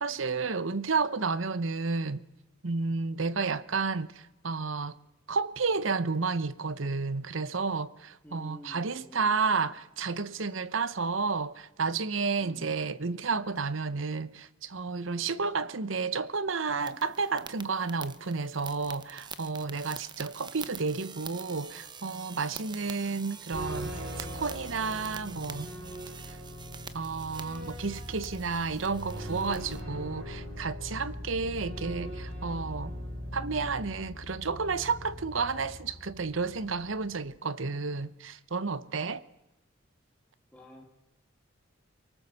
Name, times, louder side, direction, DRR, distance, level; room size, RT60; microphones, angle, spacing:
voice 1, 0.0-2.2 2.6-5.0 5.3-25.7 26.3-26.4 26.9-33.0 33.3-39.2, right 4 dB, 70° right, 0.9 m, -31 dB
voice 2, 8.2-9.4 12.4-12.7 40.5-40.8, left 1 dB, 10° left, 2.3 m, -49 dB
sound 1, 16.8-29.8, right 6 dB, 20° right, 0.9 m, -46 dB
sound 2, 23.5-37.2, equal, 90° right, 5.3 m, -40 dB
23.5 x 19.5 x 7.1 m
head